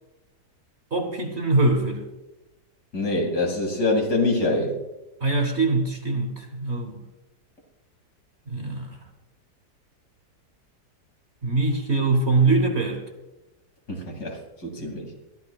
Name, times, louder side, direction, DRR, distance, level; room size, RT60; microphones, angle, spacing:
voice 1, 0.9-2.0 5.2-7.0 8.5-9.0 11.4-13.0 14.8-14.9, right 3 dB, 40° right, 5 dB, 1.4 m, -23 dB
voice 2, 2.9-4.7 13.9-15.1, left 2 dB, 65° left, 1 dB, 3.1 m, -25 dB
21.5 x 13.0 x 2.4 m, 1.0 s
omnidirectional pair, 1.8 m